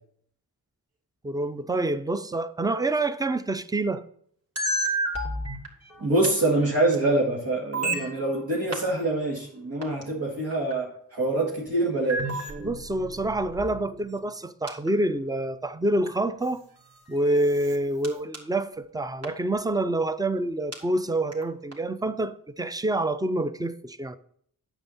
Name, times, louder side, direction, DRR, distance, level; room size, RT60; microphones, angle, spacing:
voice 1, 1.2-4.0 12.6-16.6 17.1-24.2, right 2 dB, 10° right, 0.5 m, -27 dB
sound 1, 4.6-6.3 6.9-7.0 7.7-8.4 8.7-8.9 9.8-10.0 10.5-10.7 12.1-14.3 14.7-14.9 16.1-16.2 16.9-17.0 17.3-17.8 18.0-18.1 18.3-18.4 19.2-19.3 20.7-20.8 21.3-21.4 21.7-21.8, right 1 dB, 40° right, 2.7 m, -31 dB
voice 2, 6.0-12.5, right 2 dB, 65° right, 2.0 m, -25 dB
9.0 x 7.2 x 4.2 m
cardioid pair, 60°, 38 cm